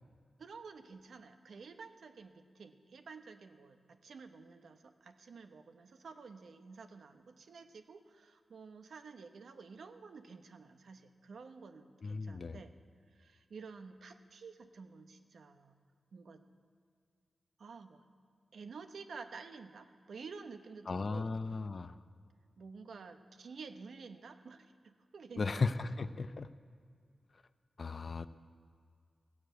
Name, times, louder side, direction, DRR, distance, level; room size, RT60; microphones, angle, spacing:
voice 1, 0.4-12.7 13.1-15.7 16.1-16.4 17.6-18.1 18.5-21.4 22.6-25.6, right 4 dB, 80° right, 7 dB, 1.0 m, -51 dB
voice 2, 12.0-12.6 20.9-21.9 25.4-26.5 27.8-28.3, left 4 dB, 45° left, 12 dB, 0.6 m, -36 dB
16.0 x 9.7 x 8.0 m, 2.1 s
wide cardioid pair, 110°, 0 cm